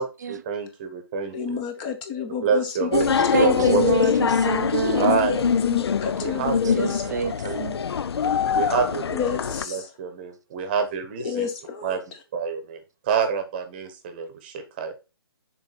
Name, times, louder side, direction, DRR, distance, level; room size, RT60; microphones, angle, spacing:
voice 1, 0.0-1.6 2.4-3.8 5.0-5.6 6.2-7.6 8.5-9.2 9.7-11.5 11.8-12.0 12.3-15.0, right 6 dB, 25° right, 1.0 m, -28 dB
voice 2, 1.3-4.0 5.6-7.0 9.1-9.9 11.2-12.0, left 7 dB, 15° left, 0.7 m, -31 dB
sound 1, 2.9-9.7, left 7 dB, 75° left, 0.5 m, -23 dB
voice 3, 2.9-5.1 6.6-7.8, right 7 dB, 40° right, 0.5 m, -27 dB
6.7 x 3.9 x 4.1 m
hypercardioid pair, 170°, 14 cm